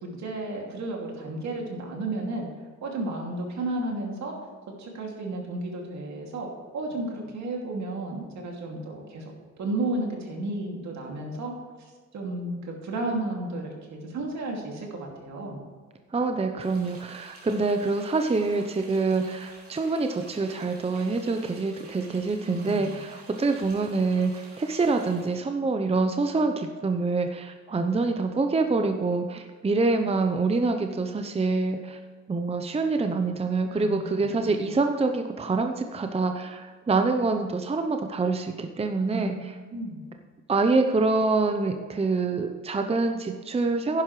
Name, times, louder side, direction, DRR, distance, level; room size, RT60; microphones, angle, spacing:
voice 1, 0.0-2.5 2.8-4.3 4.8-6.5 6.7-9.2 9.6-11.5 12.1-15.6 22.5-23.0 33.7-34.8 39.1-39.4 39.7-40.0, right 2 dB, 65° right, 0 dB, 2.5 m, -33 dB
voice 2, 16.1-22.9 23.4-32.0 32.3-39.3 40.5-44.0, right 3 dB, 20° right, 5 dB, 0.7 m, -26 dB
sound 1, 16.6-25.4, right 2 dB, 50° right, 3.2 m, -50 dB
11.0 x 10.5 x 3.2 m, 1.5 s
cardioid pair, 90°, 30 cm